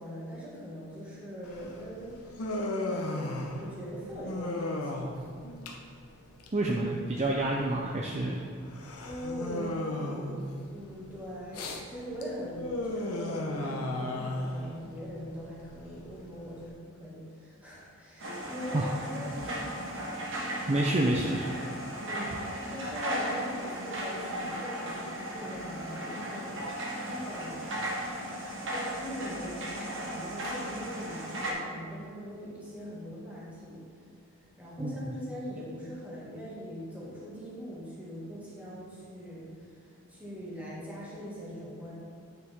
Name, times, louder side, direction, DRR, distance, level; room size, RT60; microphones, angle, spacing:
voice 1, 0.0-2.5 2.9-5.3 9.1-18.8 19.1-20.7 21.0-21.1 22.0-22.4 22.7-27.7 28.7-33.9 34.6-39.7 40.1-41.9, equal, 5° right, -8 dB, 2.0 m, -41 dB
Human voice, 1.4-16.7, left 1 dB, 90° left, 0.9 m, -36 dB
voice 2, 6.5-8.4 18.7-18.9 20.7-21.5 34.8-35.0, right 2 dB, 30° right, -1 dB, 0.5 m, -28 dB
sound 1, 18.2-31.5, equal, 60° right, 1.3 m, -36 dB
9.4 x 6.0 x 3.6 m, 2.2 s
head